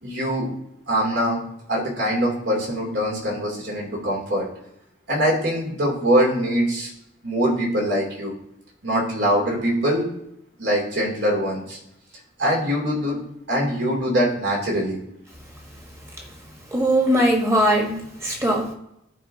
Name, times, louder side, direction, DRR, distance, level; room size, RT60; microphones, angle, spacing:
voice 1, 0.0-0.5 0.9-1.4 1.7-4.5 5.1-6.9 7.2-8.3 8.8-10.1 10.6-11.8 12.4-13.2 13.5-15.0, equal, 70° right, -2 dB, 2.8 m, -23 dB
voice 2, 16.7-18.7, right 1 dB, 15° right, 0 dB, 1.3 m, -20 dB
13.0 x 4.8 x 2.8 m, 0.80 s
head